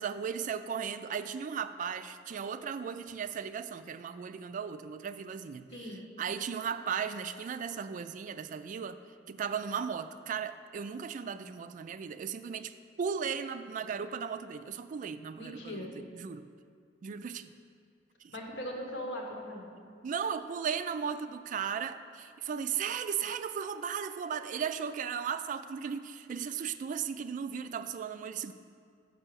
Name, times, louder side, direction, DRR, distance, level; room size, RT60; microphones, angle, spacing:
voice 1, 0.0-5.9 6.2-9.0 9.3-16.5 17.0-17.5 18.2-18.3 20.0-28.5, right 7 dB, 45° right, 10 dB, 0.3 m, -36 dB
voice 2, 5.7-6.0 15.4-15.9 18.3-19.7, equal, 75° left, 0 dB, 1.2 m, -39 dB
5.9 x 5.4 x 6.7 m, 2.3 s
head